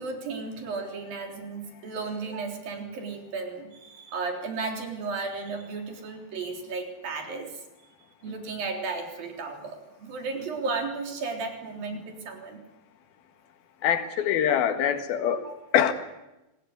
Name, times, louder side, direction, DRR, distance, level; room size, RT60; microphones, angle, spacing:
voice 1, 0.0-7.6 8.2-12.6 15.5-15.6, right 4 dB, 55° right, 3 dB, 5.2 m, -34 dB
voice 2, 13.8-15.5 15.7-15.9, left 9 dB, 65° left, 8 dB, 3.4 m, -24 dB
26.0 x 18.5 x 9.6 m, 0.97 s
omnidirectional pair, 4.9 m